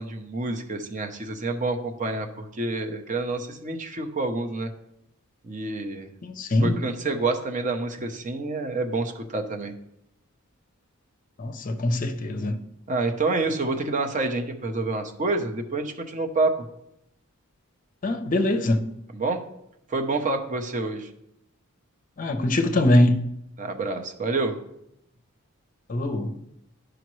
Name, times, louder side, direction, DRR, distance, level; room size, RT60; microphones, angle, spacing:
voice 1, 0.0-4.7 5.4-6.1 6.6-9.7 12.9-16.7 19.1-19.4 19.9-21.1 23.6-24.6, right 3 dB, 35° right, 0.7 m, -28 dB
voice 2, 6.2-6.8 11.4-12.6 18.0-18.8 22.2-23.2 25.9-26.4, left 1 dB, 40° left, 0.7 m, -22 dB
10.5 x 5.0 x 3.1 m
head